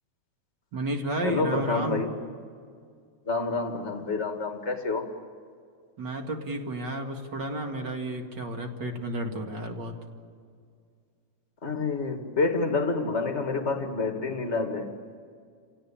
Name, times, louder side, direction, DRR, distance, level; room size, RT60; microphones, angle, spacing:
voice 1, 0.7-2.0 6.0-9.9, right 1 dB, 40° right, 3 dB, 2.2 m, -32 dB
voice 2, 1.2-2.1 3.3-5.1 11.6-14.9, left 3 dB, 25° left, 5 dB, 1.8 m, -28 dB
29.5 x 17.5 x 8.8 m, 2.2 s
omnidirectional pair, 3.7 m